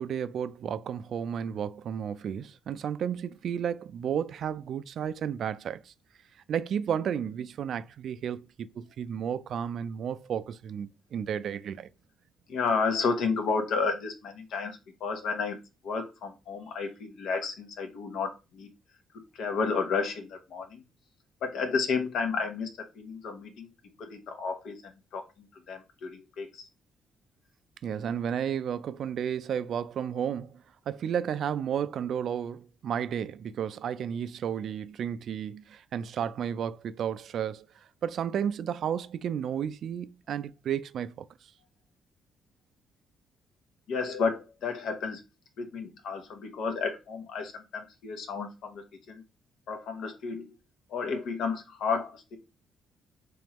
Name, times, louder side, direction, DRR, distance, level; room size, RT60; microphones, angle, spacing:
voice 1, 0.0-5.9 6.5-11.9 27.8-30.5 30.9-37.7 38.0-41.3, right 8 dB, 65° right, 0.3 m, -32 dB
voice 2, 12.5-15.6 15.8-18.7 19.3-20.8 21.4-22.7 22.9-23.7 24.0-26.7 43.9-45.2 45.6-49.2 49.7-50.5 50.9-52.4, left 5 dB, 75° left, 0.9 m, -32 dB
3.5 x 3.1 x 3.0 m
cardioid pair, 90°, 0 cm